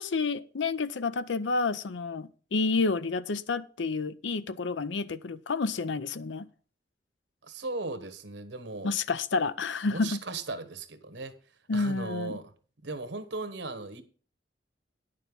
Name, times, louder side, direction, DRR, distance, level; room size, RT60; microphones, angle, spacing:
voice 1, 0.0-6.5 8.8-10.2 11.7-12.4, left 4 dB, 85° left, 0.6 m, -29 dB
voice 2, 7.4-8.9 9.9-11.4 11.7-12.5 12.8-14.0, right 3 dB, 80° right, 1.3 m, -37 dB
10.5 x 6.7 x 5.4 m
head